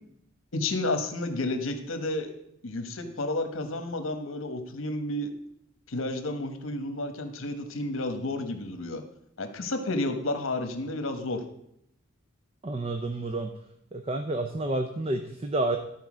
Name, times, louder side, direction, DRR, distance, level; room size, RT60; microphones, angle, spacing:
voice 1, 0.5-2.3 2.6-5.3 5.9-9.0 9.4-11.4, left 2 dB, 75° left, 7 dB, 1.2 m, -31 dB
voice 2, 12.6-13.5 13.9-15.8, right 2 dB, 30° right, 6 dB, 0.5 m, -29 dB
13.0 x 4.5 x 6.2 m, 0.76 s
head